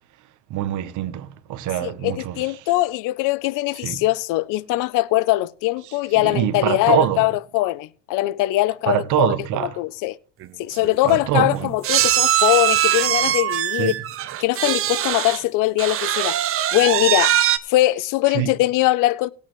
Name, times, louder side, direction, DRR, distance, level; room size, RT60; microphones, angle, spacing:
voice 1, 0.5-2.4 3.8-4.0 6.2-7.3 8.9-9.8 11.0-11.7 13.8-13.9 18.3-18.5, right 12 dB, 60° right, 1.0 m, -24 dB
voice 2, 1.8-9.3 9.6-10.2 10.6-13.9 14.4-16.4 16.7-17.4 17.7-19.3, left 17 dB, 70° left, 0.6 m, -21 dB
sound 1, 10.4-10.5 10.7-10.9 11.8-15.4 15.8-17.6, right 12 dB, 40° right, 0.7 m, -21 dB
18.5 x 8.4 x 3.1 m
cardioid pair, 135°, 33 cm